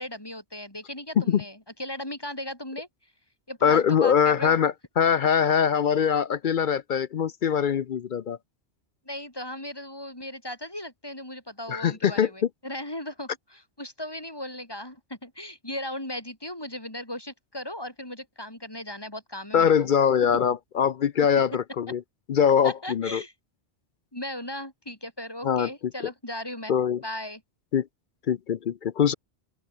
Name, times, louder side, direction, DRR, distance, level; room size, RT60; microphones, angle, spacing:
voice 1, 0.0-2.9 3.5-4.6 9.1-19.9 22.6-23.3 24.1-26.7 27.0-27.4, left 1 dB, 20° left, 4.0 m, -37 dB
voice 2, 3.6-8.4 11.7-12.3 19.5-22.0 22.3-23.2 25.4-25.7 26.7-27.0 27.7-27.9 28.3-29.1, left 7 dB, 55° left, 0.7 m, -22 dB
open air
omnidirectional pair, 1.1 m